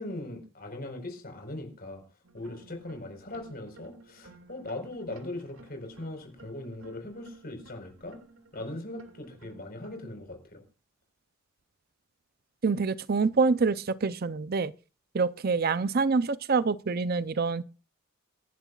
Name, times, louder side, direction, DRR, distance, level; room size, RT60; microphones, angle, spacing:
voice 1, 0.0-2.0 2.3-8.2 8.5-10.6, left 1 dB, 45° left, 4.5 m, -40 dB
sound 1, 2.2-10.1, right 2 dB, 85° right, 2.1 m, -54 dB
voice 2, 12.6-14.7 15.1-17.6, right 4 dB, 45° right, 0.5 m, -26 dB
26.0 x 11.0 x 2.4 m
head